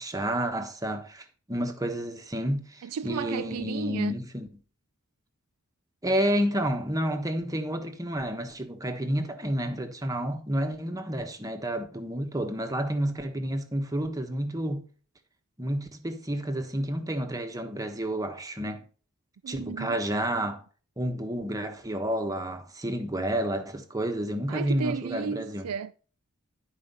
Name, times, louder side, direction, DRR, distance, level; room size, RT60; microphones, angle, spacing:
voice 1, 0.0-4.5 6.0-14.8 15.6-18.8 19.5-20.6 21.0-25.7, equal, 15° right, 1.2 m, -30 dB
voice 2, 2.8-4.1 19.4-20.0 24.5-25.9, right 6 dB, 80° right, 0.4 m, -33 dB
11.0 x 5.1 x 5.4 m
head